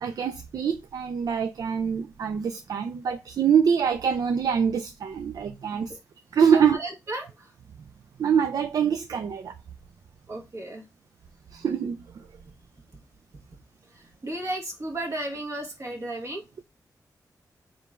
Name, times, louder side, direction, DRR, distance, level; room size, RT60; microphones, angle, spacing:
voice 1, 0.0-6.0 6.3-6.8 8.2-9.5 11.5-12.0, right 7 dB, 65° right, 0.4 m, -24 dB
voice 2, 6.5-7.5 10.3-10.9 13.9-16.4, right 1 dB, 45° right, 1.3 m, -34 dB
4.5 x 3.6 x 2.4 m
wide cardioid pair, 125°, 7 cm